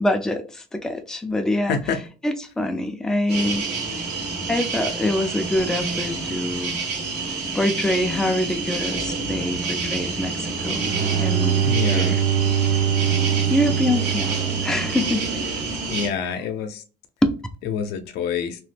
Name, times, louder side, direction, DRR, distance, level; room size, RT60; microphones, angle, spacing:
voice 1, 0.0-3.6 4.5-6.8 7.5-10.9 11.2-11.6 11.9-12.2 13.5-14.3 14.6-15.3 16.2-16.3 17.2-17.4, left 1 dB, 5° left, 0.4 m, -25 dB
sound 1, 3.3-16.1, right 4 dB, 80° right, 1.3 m, -28 dB
Bowed string instrument, 10.5-15.5, right 9 dB, 45° right, 0.6 m, -23 dB
voice 2, 11.6-12.2 15.9-16.8 17.7-18.6, left 6 dB, 80° left, 0.6 m, -26 dB
3.0 x 2.1 x 3.3 m
cardioid pair, 110°, 17 cm